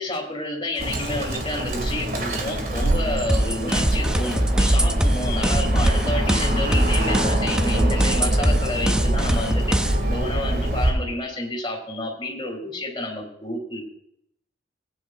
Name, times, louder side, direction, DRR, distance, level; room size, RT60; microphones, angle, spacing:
voice 1, 0.0-9.7 10.1-13.8, left 1 dB, 25° left, -1 dB, 3.4 m, -30 dB
Bird, 0.8-10.9, right 1 dB, 50° right, 2.2 m, -24 dB
sound 1, 3.3-10.1, equal, 5° right, 0.4 m, -24 dB
18.0 x 9.7 x 2.5 m, 0.74 s
head